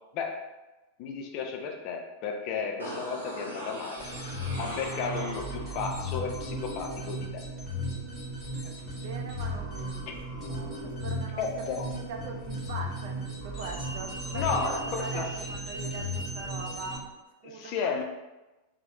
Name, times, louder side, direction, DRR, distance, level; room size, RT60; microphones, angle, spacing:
voice 1, 1.0-4.1 4.6-7.4 10.1-10.2 11.4-11.9 14.3-15.3 17.4-18.0, left 5 dB, 40° left, 3 dB, 0.4 m, -33 dB
sound 1, 2.8-5.8 6.1-6.2, equal, 85° right, 0.8 m, -40 dB
sound 2, 4.0-17.0, equal, 15° left, 1.1 m, -36 dB
voice 2, 9.0-17.1 17.4-17.9, right 3 dB, 50° right, 3 dB, 0.4 m, -41 dB
3.0 x 2.0 x 2.9 m, 1.1 s
figure-of-eight pair, 90°, 0 cm